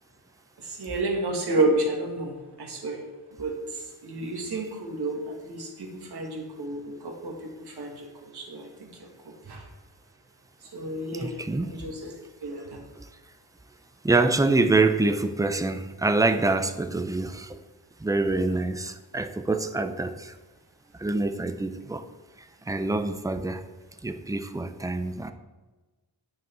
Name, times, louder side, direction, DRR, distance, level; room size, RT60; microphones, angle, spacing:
voice 1, 0.7-2.3 2.6-3.0 3.4-3.6 4.0-7.3 7.8-8.9 9.5-9.6 10.7-11.9 12.4-12.8, right 2 dB, 75° right, 1 dB, 2.0 m, -30 dB
voice 2, 11.1-11.7 14.0-17.6 18.0-20.3 21.0-22.0 22.7-23.6 24.0-25.3, right 3 dB, 10° right, 8 dB, 0.5 m, -25 dB
9.4 x 6.2 x 4.5 m, 1.2 s
wide cardioid pair, 135°, 39 cm